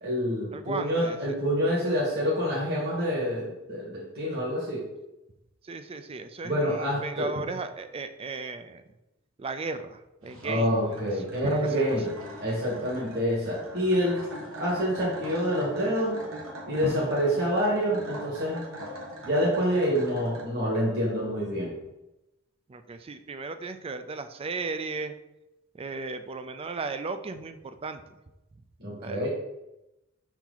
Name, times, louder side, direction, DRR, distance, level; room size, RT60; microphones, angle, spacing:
voice 1, 0.0-4.8 6.4-7.3 10.4-12.1 12.4-14.2 14.5-16.2 16.7-18.6 19.2-21.7 28.8-29.3, equal, 50° right, -6 dB, 1.7 m, -27 dB
voice 2, 0.5-1.2 5.6-8.8 9.4-11.0 11.3-11.9 22.7-25.1 25.7-28.2 29.0-29.3, right 3 dB, 30° right, 9 dB, 0.4 m, -36 dB
Drum, 7.4-8.4 11.4-13.3 16.8-18.8, equal, 70° right, 1.5 m, -40 dB
sound 1, 10.2-20.4, right 1 dB, 85° right, 1.3 m, -42 dB
5.7 x 4.5 x 3.9 m, 0.95 s
head